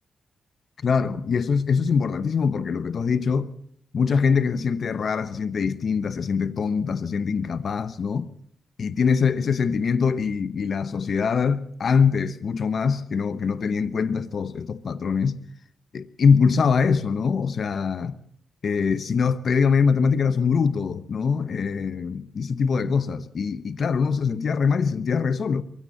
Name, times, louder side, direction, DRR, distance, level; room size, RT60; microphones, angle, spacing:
voice 1, 0.8-3.5 3.9-8.3 8.8-15.4 15.9-18.2 18.6-25.6, left 5 dB, 55° left, 0.9 m, -23 dB
23.0 x 16.5 x 7.2 m
cardioid pair, 95°, 0 cm